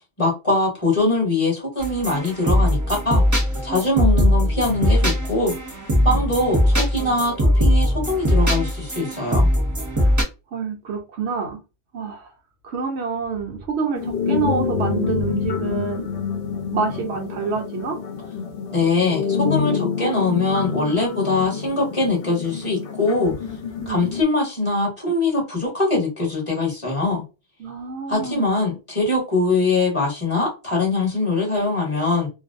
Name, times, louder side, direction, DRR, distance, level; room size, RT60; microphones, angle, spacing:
voice 1, 0.2-3.2 3.6-5.5 6.0-9.5 18.7-23.3 23.9-27.2 28.1-32.3, left 3 dB, 30° left, 0.9 m, -22 dB
sound 1, 1.8-10.2, equal, 20° right, 0.6 m, -20 dB
voice 2, 10.5-11.6 11.9-12.3 12.6-16.1 16.7-18.0 23.8-24.1 27.6-28.5, right 5 dB, 70° right, 1.0 m, -27 dB
sound 2, 13.9-24.2, left 6 dB, 60° left, 0.8 m, -27 dB
2.5 x 2.0 x 2.5 m
omnidirectional pair, 1.2 m